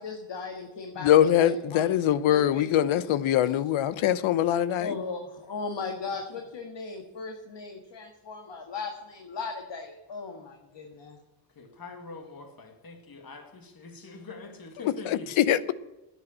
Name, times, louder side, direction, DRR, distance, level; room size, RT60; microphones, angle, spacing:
voice 1, 0.0-2.0 2.3-2.7 4.8-11.2, left 4 dB, 65° left, 1.8 m, -37 dB
voice 2, 1.0-5.0 14.8-15.7, left 11 dB, 85° left, 0.8 m, -23 dB
voice 3, 11.6-15.4, left 3 dB, 45° left, 2.2 m, -44 dB
10.5 x 9.1 x 7.8 m
supercardioid pair, 45°, 47 cm